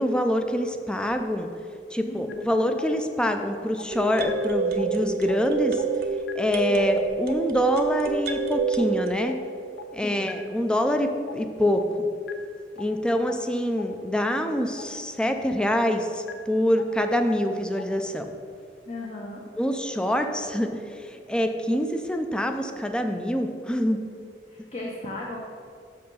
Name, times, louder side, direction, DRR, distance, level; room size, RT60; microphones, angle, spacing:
voice 1, 0.0-1.5 1.9-5.8 6.4-9.3 9.9-12.1 12.8-18.3 19.5-24.0, left 1 dB, 5° left, 6 dB, 0.5 m, -25 dB
sound 1, 1.1-1.2 3.9-9.1, right 5 dB, 60° right, 0.7 m, -28 dB
voice 2, 2.0-2.5 6.7-6.9 10.0-10.4 18.9-19.4 24.5-25.4, left 2 dB, 35° left, -3 dB, 0.8 m, -36 dB
sound 2, 2.3-2.4 2.8-2.9 3.3-3.4 3.8-3.9 4.3-4.4 4.8-4.9 5.3-5.4 5.8-5.9 6.3-6.4 6.8-6.9 7.3-7.4 7.8-7.9 8.3-8.4 8.8-8.9 9.3-9.4 9.8-9.9 10.3-10.4 10.8-10.9 11.3-11.4 11.8-11.9 12.3-12.4 12.8-12.9 13.3-13.4 13.8-13.9 14.3-14.4 14.8-14.9 15.3-15.4 15.8-15.9 16.3-16.4 16.8-16.9 17.3-17.4 17.8-17.9, left 8 dB, 75° left, 0.6 m, -38 dB
6.5 x 5.5 x 5.4 m, 2.3 s
head